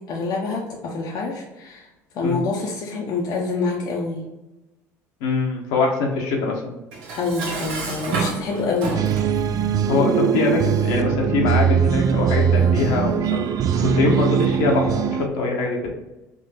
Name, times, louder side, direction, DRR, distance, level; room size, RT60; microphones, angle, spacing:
voice 1, 0.1-1.9 2.1-4.2 7.2-9.0, left 3 dB, 55° left, -1 dB, 0.8 m, -26 dB
voice 2, 5.2-6.6 9.9-13.4 13.7-15.9, left 4 dB, 75° left, 0 dB, 1.1 m, -23 dB
Dishes pots and pans, 6.9-9.4, right 4 dB, 75° right, 1.1 m, -29 dB
sound 1, 8.9-15.3, right 8 dB, 50° right, 0.4 m, -21 dB
3.8 x 3.2 x 4.1 m, 0.99 s
hypercardioid pair, 70°, 8 cm